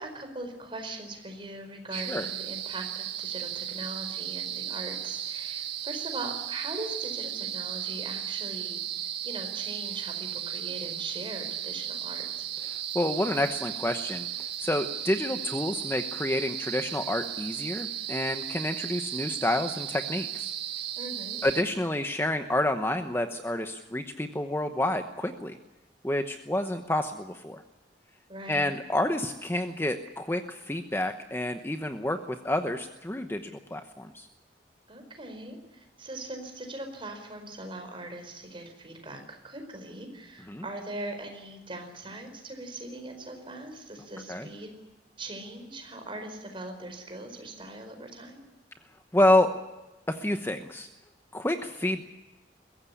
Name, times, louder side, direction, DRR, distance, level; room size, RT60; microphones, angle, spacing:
voice 1, 0.0-8.8 9.2-12.5 21.0-21.4 28.3-28.7 34.9-44.7 45.2-48.4, right 2 dB, 30° right, 5 dB, 4.7 m, -40 dB
voice 2, 1.9-2.3 12.7-14.3 14.6-20.5 21.4-25.6 26.0-27.6 28.5-32.2 32.4-34.3 40.5-40.6 44.3-44.5 49.1-49.5 50.1-50.9 51.3-52.0, left 1 dB, 15° left, 7 dB, 1.0 m, -28 dB
sound 1, 1.9-21.6, right 10 dB, 65° right, 1.5 m, -35 dB
22.5 x 16.0 x 9.9 m, 1.1 s
head